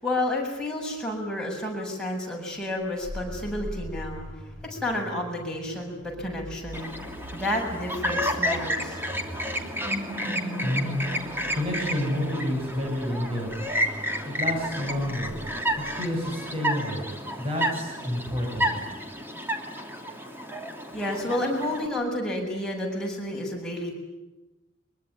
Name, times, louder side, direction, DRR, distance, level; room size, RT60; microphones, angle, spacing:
voice 1, 0.0-4.3 4.6-6.9 7.3-9.0 20.9-23.9, left 1 dB, 5° left, -2 dB, 7.6 m, -30 dB
sound 1, 2.8-16.3, equal, 70° right, 3.2 m, -40 dB
Chirp tweet, 6.7-21.9, equal, 10° right, 2.9 m, -31 dB
voice 2, 10.6-11.0 11.5-13.5 14.2-15.3 15.8-17.0 17.4-18.7, left 1 dB, 30° right, 0 dB, 7.7 m, -29 dB
24.0 x 23.0 x 9.9 m, 1.0 s
head